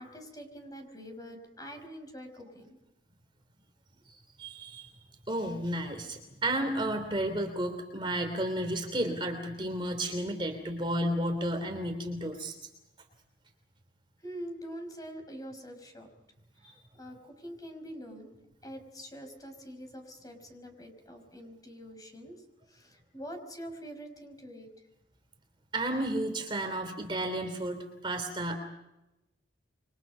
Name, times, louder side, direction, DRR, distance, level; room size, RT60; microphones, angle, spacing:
voice 1, 0.0-2.8 14.2-16.1 16.6-18.3 18.6-24.7, equal, 20° left, 5 dB, 5.3 m, -45 dB
voice 2, 4.4-4.9 5.3-12.5 16.6-16.7 25.7-28.6, right 1 dB, 25° right, 5 dB, 3.1 m, -32 dB
28.0 x 25.0 x 5.6 m, 0.94 s
head